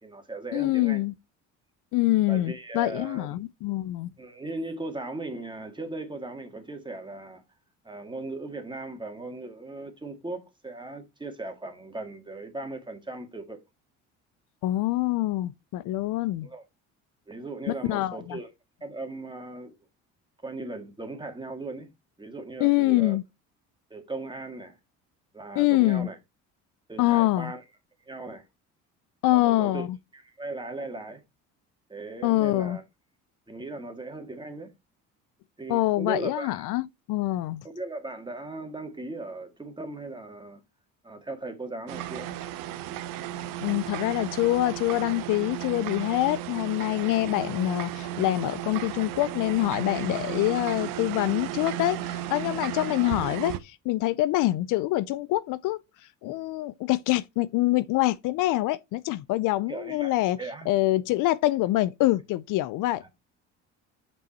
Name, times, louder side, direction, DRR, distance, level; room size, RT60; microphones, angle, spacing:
voice 1, 0.0-1.0 2.3-3.3 4.2-7.4 7.8-13.6 16.4-16.6 17.3-18.5 18.8-19.8 20.4-21.9 22.2-23.2 23.9-24.8 25.3-26.2 26.9-27.6 28.0-28.5 29.3-29.9 30.1-31.2 31.9-32.8 33.5-34.7 35.6-36.7 37.6-40.6 41.0-42.3 59.7-60.1 60.4-60.7 63.0-63.1, right 2 dB, 15° right, 1.9 m, -38 dB
voice 2, 0.5-1.1 1.9-4.1 14.6-16.5 17.7-18.4 22.6-23.2 25.6-26.1 27.0-27.5 29.2-30.0 32.2-32.8 35.7-37.7 43.6-60.4 60.7-63.1, left 17 dB, 65° left, 0.5 m, -25 dB
sound 1, 41.9-53.6, right 12 dB, 70° right, 0.8 m, -34 dB
5.4 x 5.4 x 4.2 m
supercardioid pair, 85°, 34 cm